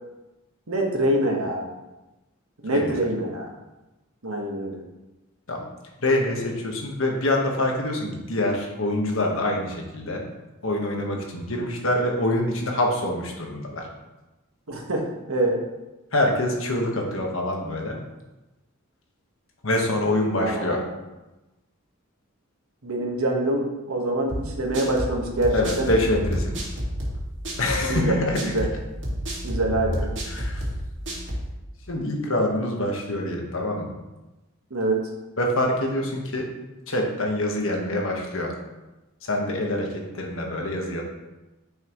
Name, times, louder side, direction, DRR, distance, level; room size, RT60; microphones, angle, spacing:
voice 1, 0.7-1.7 2.6-3.5 4.2-4.8 14.7-15.6 20.4-20.9 22.8-25.9 27.8-28.1 28.4-28.7 29.4-30.1 34.7-35.1, right 1 dB, 85° right, 1 dB, 1.5 m, -25 dB
voice 2, 6.0-10.2 10.6-13.9 16.1-18.0 19.6-20.8 25.5-26.7 27.6-28.5 30.3-30.6 31.9-33.9 35.4-36.5 36.9-38.5 39.2-41.0, left 1 dB, 70° left, 1 dB, 1.4 m, -25 dB
sound 1, 24.3-31.5, equal, 60° right, 2.2 m, -30 dB
9.4 x 5.7 x 3.1 m, 1.1 s
head